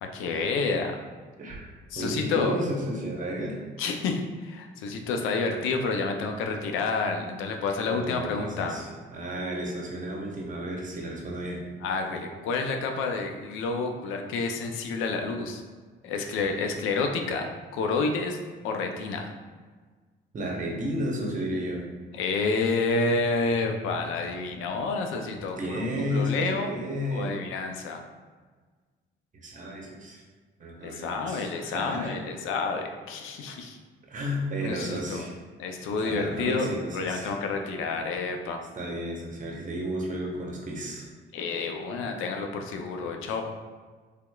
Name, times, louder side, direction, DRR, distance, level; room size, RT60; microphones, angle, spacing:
voice 1, 0.0-1.0 1.9-2.6 3.8-8.8 11.8-15.6 16.0-17.5 17.7-18.4 18.6-19.3 22.1-26.7 27.1-28.0 30.8-33.8 34.6-35.2 35.6-38.6 41.3-43.4, left 4 dB, 90° left, 4 dB, 0.4 m, -29 dB
voice 2, 2.0-3.6 7.9-11.6 20.3-21.8 25.6-27.4 29.3-30.2 30.6-32.1 34.1-35.3 36.1-37.3 38.7-41.1, equal, 40° right, -1 dB, 0.8 m, -32 dB
3.3 x 2.9 x 2.2 m, 1.4 s
cardioid pair, 90°, 20 cm